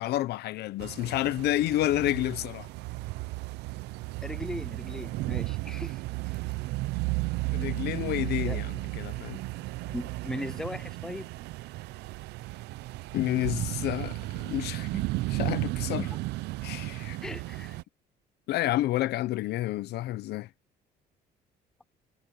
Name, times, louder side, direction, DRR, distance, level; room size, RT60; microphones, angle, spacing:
voice 1, 0.0-2.7 7.5-9.4 13.1-15.0 15.3-16.1 16.6-17.2 18.5-20.5, left 15 dB, 75° left, 0.9 m, -30 dB
sound 1, 0.8-17.8, right 20 dB, 85° right, 0.6 m, -34 dB
voice 2, 4.2-6.0 8.4-8.6 9.9-11.3 17.2-17.8, left 1 dB, 5° left, 0.5 m, -38 dB
cardioid pair, 110°, 17 cm